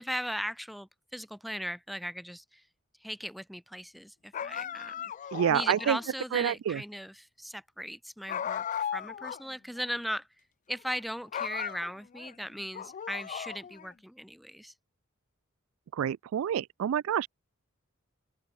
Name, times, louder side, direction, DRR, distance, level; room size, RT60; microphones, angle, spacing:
voice 1, 0.0-2.6 3.0-5.1 5.5-10.3 10.7-14.7, equal, ahead, 2.2 m, -38 dB
sound 1, 4.3-6.1 8.3-9.5 9.8-9.9 10.7-11.0 11.3-12.3 12.7-13.9, left 9 dB, 35° left, 0.3 m, -37 dB
voice 2, 5.3-6.0 6.3-6.8 15.9-17.3, right 9 dB, 75° right, 0.3 m, -28 dB
open air
head